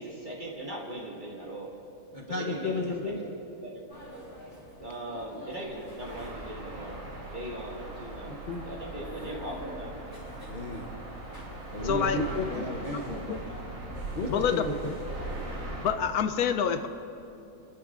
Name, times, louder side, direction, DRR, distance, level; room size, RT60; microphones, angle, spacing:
voice 1, 0.0-1.7 2.2-2.7 3.0-3.3 3.6-3.8 4.8-7.0 7.3-8.3 8.6-9.9, right 1 dB, 30° right, -3 dB, 1.9 m, -39 dB
voice 2, 2.1-3.3 8.3-8.6 8.9-9.1 10.5-10.9 11.7-13.4 14.1-14.9, left 2 dB, 40° left, 0 dB, 0.8 m, -33 dB
sound 1, 3.9-15.7, left 1 dB, 15° left, 3.4 m, -47 dB
sound 2, 6.0-15.9, right 2 dB, 75° right, 3.6 m, -40 dB
voice 3, 11.8-12.2 13.1-13.4 14.3-14.6 15.8-16.9, left 7 dB, 80° left, 8 dB, 1.1 m, -27 dB
27.5 x 11.0 x 2.5 m, 2.8 s
omnidirectional pair, 1.6 m